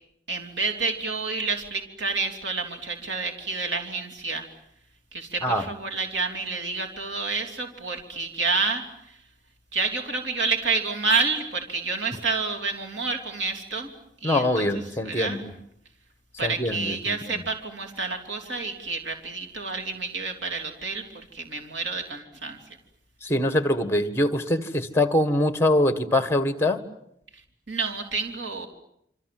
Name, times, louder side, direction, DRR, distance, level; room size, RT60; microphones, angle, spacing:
voice 1, 0.3-4.5 5.1-9.2 9.7-13.9 14.2-15.4 16.4-22.6 27.7-28.7, right 4 dB, 85° right, 3.3 m, -29 dB
voice 2, 14.2-15.5 16.4-17.4 23.2-26.8, left 1 dB, 15° left, 1.6 m, -24 dB
27.5 x 26.0 x 7.8 m
head